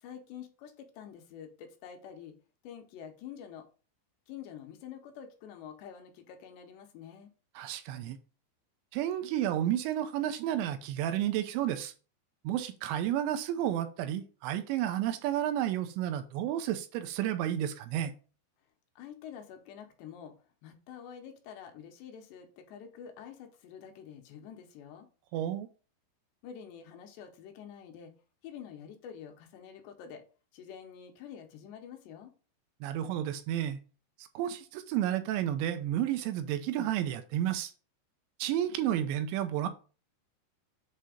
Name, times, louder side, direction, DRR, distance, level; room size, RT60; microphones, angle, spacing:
voice 1, 0.0-2.3 2.6-3.7 4.3-7.3 19.0-20.3 20.6-25.1 26.4-28.1 28.4-30.2 30.5-32.3, left 8 dB, 75° left, 2.9 m, -47 dB
voice 2, 7.6-8.2 8.9-11.9 12.4-18.1 25.3-25.7 32.8-33.8 34.4-37.7 38.4-39.7, right 11 dB, 85° right, 2.9 m, -31 dB
7.6 x 2.8 x 4.9 m
omnidirectional pair, 5.2 m